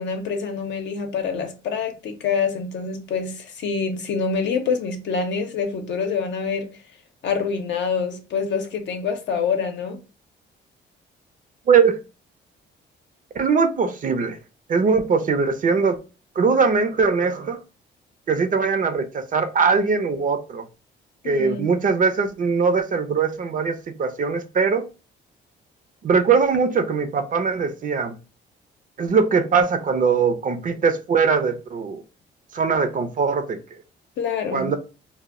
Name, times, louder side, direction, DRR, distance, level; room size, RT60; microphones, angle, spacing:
voice 1, 0.0-6.7 7.2-10.0 21.2-21.6 34.2-34.7, left 5 dB, 65° left, 0.7 m, -26 dB
voice 2, 11.7-12.0 13.3-14.4 14.7-16.0 16.4-17.6 18.3-20.6 21.2-24.8 26.0-28.1 29.0-32.0 32.5-33.6 34.5-34.8, right 5 dB, 40° right, 0.5 m, -21 dB
2.2 x 2.0 x 3.5 m
cardioid pair, 90°, 20 cm